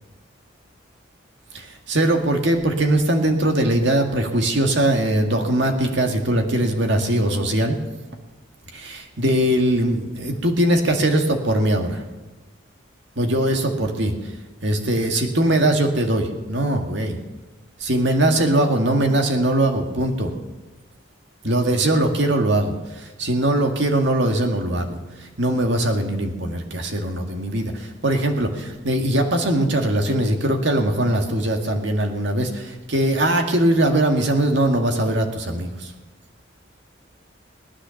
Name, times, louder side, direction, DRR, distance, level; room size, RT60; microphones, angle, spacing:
voice 1, 1.5-7.8 8.7-12.0 13.2-14.1 14.6-17.2 17.8-20.3 21.4-25.0 25.4-35.9, right 1 dB, 65° right, 4 dB, 2.0 m, -21 dB
19.0 x 10.0 x 7.1 m, 1.1 s
head